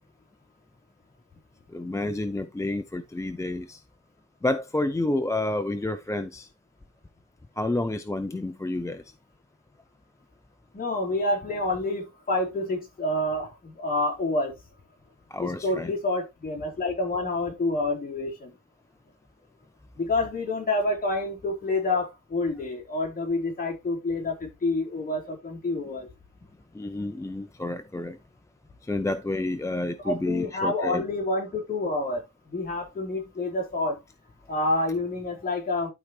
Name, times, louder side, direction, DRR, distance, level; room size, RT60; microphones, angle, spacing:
voice 1, 1.7-3.8 4.4-6.5 7.6-9.0 15.3-15.9 26.7-28.2 28.8-31.0, left 2 dB, 10° left, 0.4 m, -29 dB
voice 2, 10.7-14.5 15.4-18.5 20.0-26.1 30.0-34.0 34.5-35.9, left 2 dB, 25° left, 4.0 m, -28 dB
12.0 x 4.8 x 3.2 m
wide cardioid pair, 160°, 32 cm